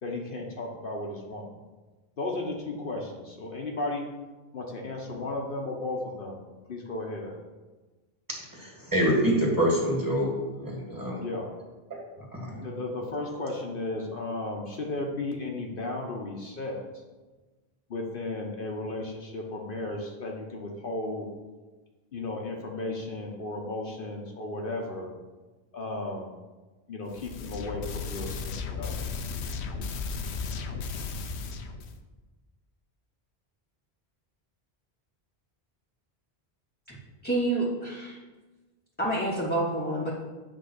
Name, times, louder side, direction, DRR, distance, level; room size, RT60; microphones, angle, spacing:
voice 1, 0.0-1.5 2.2-4.0 4.5-6.4 6.7-7.4 10.6-10.7 11.2-11.5 12.6-16.8 17.9-21.3 22.1-25.1 25.7-26.3 26.9-28.9, left 2 dB, 55° left, 0 dB, 1.0 m, -34 dB
voice 2, 8.6-10.3 10.6-11.2 12.3-12.6, equal, 20° right, -2 dB, 2.1 m, -25 dB
sound 1, 27.1-32.0, left 5 dB, 85° left, 0.9 m, -35 dB
voice 3, 37.2-38.2 39.0-40.1, right 1 dB, 10° left, -6 dB, 0.9 m, -28 dB
7.7 x 3.6 x 6.5 m, 1.2 s
omnidirectional pair, 1.1 m